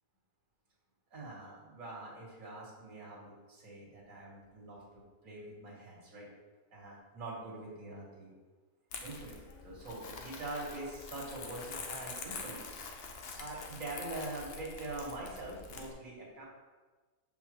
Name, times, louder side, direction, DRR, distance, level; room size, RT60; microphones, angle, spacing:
voice 1, 1.1-6.3 6.7-8.3 9.0-12.6 13.4-16.4, right 2 dB, 80° right, -4 dB, 2.5 m, -44 dB
Crumpling crinkling, 8.9-15.9, left 4 dB, 55° left, 0.9 m, -45 dB
7.1 x 5.5 x 3.2 m, 1.3 s
omnidirectional pair, 1.4 m